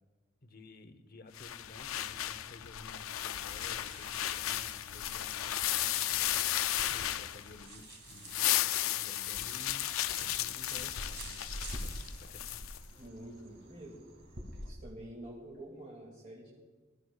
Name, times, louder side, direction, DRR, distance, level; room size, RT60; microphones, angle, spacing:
voice 1, 0.4-9.9 10.2-12.7, left 2 dB, 45° left, 9 dB, 0.9 m, -54 dB
sound 1, 1.4-7.7 8.1-12.8, left 13 dB, 80° left, 0.4 m, -34 dB
sound 2, 3.4-14.7, right 1 dB, 65° right, 2.2 m, -48 dB
voice 2, 13.0-14.0 14.6-16.5, right 1 dB, 35° right, -3 dB, 2.3 m, -47 dB
21.5 x 14.0 x 2.4 m, 1.4 s
head